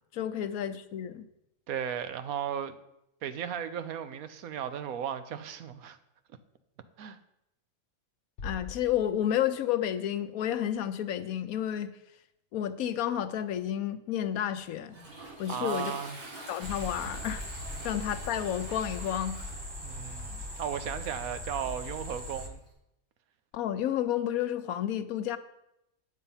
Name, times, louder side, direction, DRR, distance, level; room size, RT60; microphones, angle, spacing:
voice 1, 0.1-1.3 8.4-11.9 12.5-15.0 15.4-15.9 16.5-17.4 17.8-19.4 23.5-25.4, left 10 dB, 85° left, 1.2 m, -31 dB
voice 2, 1.7-2.7 3.2-6.0 7.0-7.2 15.5-16.2 19.8-22.6, right 8 dB, 90° right, 1.2 m, -35 dB
sound 1, 8.4-9.8, left 4 dB, 65° left, 1.1 m, -43 dB
Toilet flush, 14.4-22.7, right 1 dB, 75° right, 4.1 m, -48 dB
sound 2, 16.6-22.5, left 1 dB, 20° right, 0.9 m, -40 dB
9.6 x 7.4 x 5.6 m
omnidirectional pair, 1.5 m